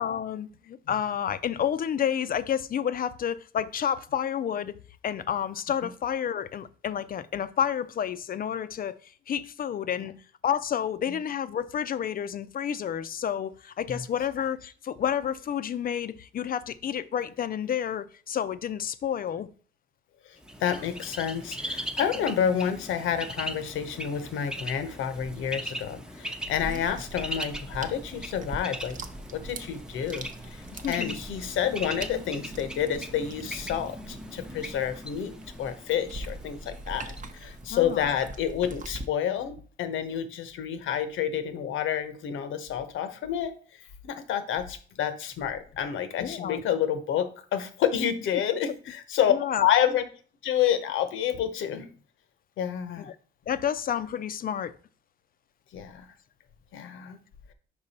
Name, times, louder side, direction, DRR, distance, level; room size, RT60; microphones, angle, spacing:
voice 1, 0.0-4.7 5.0-9.0 9.3-10.1 10.4-19.5 26.6-26.8 30.7-31.2 37.7-38.1 46.2-46.6 48.5-48.6 49.3-49.7 53.0-53.1 53.5-54.7, left 9 dB, 45° left, 0.5 m, -30 dB
Bird, 20.4-38.2, equal, 5° right, 0.7 m, -40 dB
voice 2, 20.6-29.0 29.3-35.3 35.6-43.5 44.0-49.3 49.6-50.0 50.4-51.9 52.6-53.1 55.7-56.1 56.7-57.2, left 9 dB, 80° left, 0.9 m, -29 dB
sound 1, 26.6-39.1, right 2 dB, 40° right, 0.8 m, -42 dB
5.3 x 4.7 x 4.1 m
cardioid pair, 90°, 20 cm